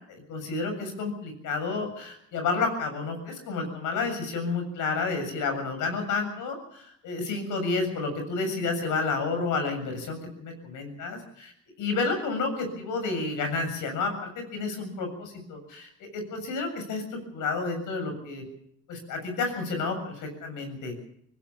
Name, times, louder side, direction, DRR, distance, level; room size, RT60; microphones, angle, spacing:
voice 1, 0.1-11.5 11.8-18.4 18.9-20.9, left 4 dB, 85° left, 6 dB, 7.4 m, -30 dB
24.5 x 16.5 x 7.3 m, 0.70 s
cardioid pair, 90°, 30 cm